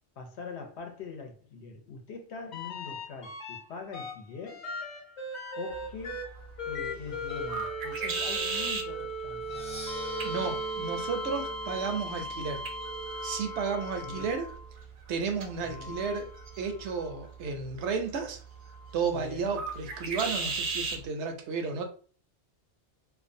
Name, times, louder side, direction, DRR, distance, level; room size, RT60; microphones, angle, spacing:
voice 1, 0.2-4.7 5.5-6.3 6.6-9.5 14.0-14.3 15.6-16.1 19.1-19.6, left 5 dB, 75° left, 0.9 m, -43 dB
sound 1, 2.5-3.6 3.9-14.7 15.6-17.1 18.8-18.9, equal, 45° left, 0.8 m, -38 dB
sound 2, 5.7-21.0, right 4 dB, 60° right, 0.6 m, -39 dB
Percussion, 9.4-13.2, equal, 10° left, 0.3 m, -48 dB
voice 2, 10.2-12.6 13.2-14.5 15.1-16.3 16.6-18.4 18.9-21.9, right 5 dB, 85° right, 0.9 m, -33 dB
2.5 x 2.1 x 2.5 m
omnidirectional pair, 1.2 m